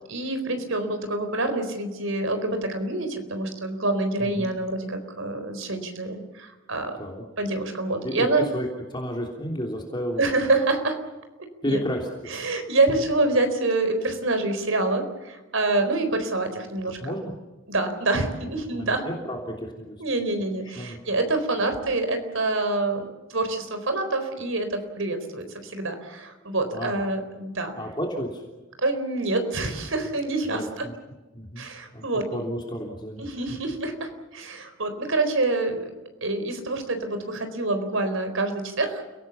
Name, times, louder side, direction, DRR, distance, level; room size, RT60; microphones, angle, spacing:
voice 1, 0.1-7.0 7.4-8.4 10.2-11.0 11.6-11.8 12.3-17.2 17.7-19.0 20.0-27.7 28.8-30.9 31.6-32.4 33.2-35.8 36.2-39.0, right 2 dB, 70° right, 8 dB, 4.2 m, -26 dB
voice 2, 8.0-8.7 8.9-10.5 11.6-12.1 17.0-17.3 18.7-20.0 20.6-21.0 26.7-27.0 27.7-28.4 30.4-30.9 31.3-31.6 31.9-32.0 32.3-33.6, equal, 20° left, 0 dB, 3.3 m, -32 dB
29.5 x 18.0 x 7.2 m, 1.1 s
head